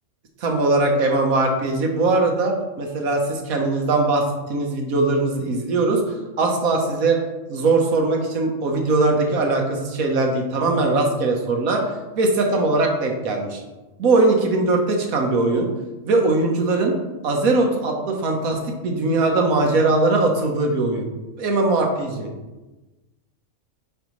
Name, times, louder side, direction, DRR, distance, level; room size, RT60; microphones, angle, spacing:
voice 1, 0.4-4.2 4.5-7.2 7.5-11.8 12.2-13.6 14.0-15.7 16.0-16.9 17.2-21.1 21.4-22.3, right 3 dB, 85° right, 2 dB, 1.5 m, -20 dB
8.9 x 4.7 x 3.1 m, 1.1 s
omnidirectional pair, 1.4 m